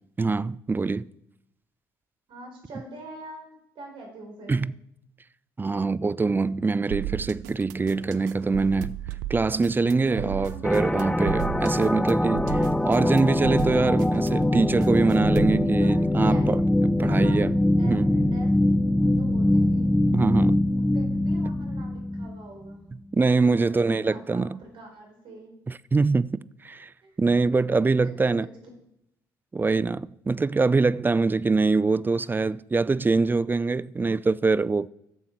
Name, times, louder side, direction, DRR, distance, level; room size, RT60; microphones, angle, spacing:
voice 1, 0.2-1.1 4.5-4.7 5.6-9.0 9.3-17.5 17.8-18.1 20.1-20.7 23.1-24.6 25.7-26.9 27.2-28.5 29.5-34.9, right 3 dB, 20° right, 0.4 m, -24 dB
voice 2, 2.3-4.6 9.9-10.7 15.8-16.5 17.0-18.5 19.0-19.9 20.7-22.9 23.4-25.6 27.0-27.2 27.9-28.5, right 1 dB, 60° right, 4.3 m, -43 dB
sound 1, 6.9-15.6, right 15 dB, 80° right, 0.5 m, -35 dB
sound 2, 10.6-22.4, left 1 dB, 10° left, 0.8 m, -23 dB
12.5 x 7.3 x 4.6 m
hypercardioid pair, 50°, 10 cm